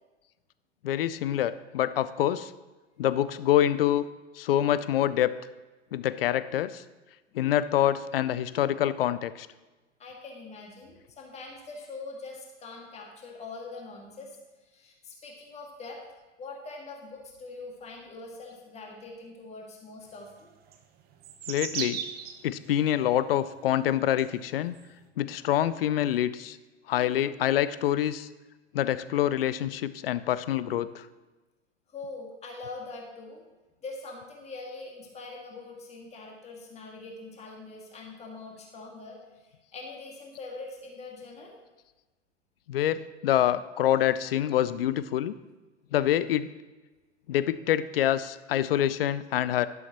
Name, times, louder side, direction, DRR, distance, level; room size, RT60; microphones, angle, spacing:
voice 1, 0.8-2.5 3.0-4.1 4.3-5.3 5.9-6.8 7.3-9.5 21.5-22.0 22.4-24.7 25.2-26.6 26.9-28.3 28.7-31.1 42.7-45.4 45.9-46.5 47.3-49.7, left 11 dB, 50° left, 16 dB, 0.6 m, -26 dB
voice 2, 10.0-16.0 16.4-20.5 31.9-33.4 33.8-41.6, left 3 dB, 20° left, 0 dB, 2.1 m, -43 dB
sound 1, 20.7-22.8 23.5-23.6 24.2-24.8, right 8 dB, 25° right, 1.0 m, -36 dB
12.0 x 11.5 x 3.0 m, 1.2 s
figure-of-eight pair, 95°, 36 cm